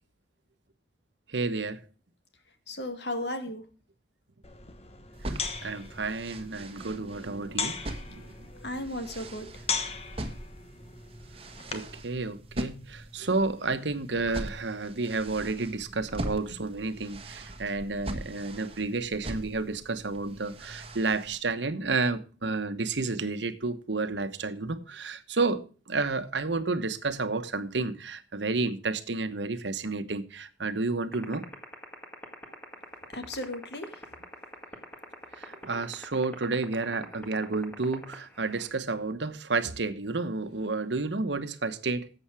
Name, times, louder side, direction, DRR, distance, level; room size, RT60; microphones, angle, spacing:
voice 1, 1.3-1.8 5.6-7.8 8.1-8.3 11.7-31.4 35.4-42.1, right 3 dB, 85° right, 1.1 m, -31 dB
voice 2, 2.7-3.6 8.6-9.5 33.1-34.0, left 1 dB, 70° left, 2.0 m, -35 dB
sound 1, 4.4-12.0, left 5 dB, 35° left, 1.2 m, -38 dB
sound 2, 5.1-21.4, right 1 dB, 30° right, 1.4 m, -41 dB
sound 3, 31.1-38.7, left 1 dB, 10° left, 1.8 m, -41 dB
11.5 x 7.9 x 4.8 m
head